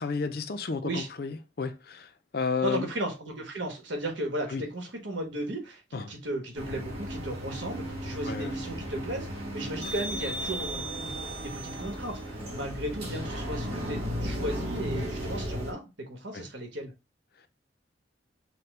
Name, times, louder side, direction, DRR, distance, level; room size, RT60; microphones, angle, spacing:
voice 1, 0.0-2.9 4.5-4.6 5.9-6.1 8.3-8.5 9.8-9.9 16.3-16.4, left 5 dB, 55° left, 0.5 m, -32 dB
voice 2, 2.6-11.1 11.4-16.9, right 1 dB, 85° right, 1.4 m, -35 dB
sound 1, 6.5-15.7, equal, 30° right, 1.7 m, -35 dB
5.9 x 2.2 x 3.3 m
head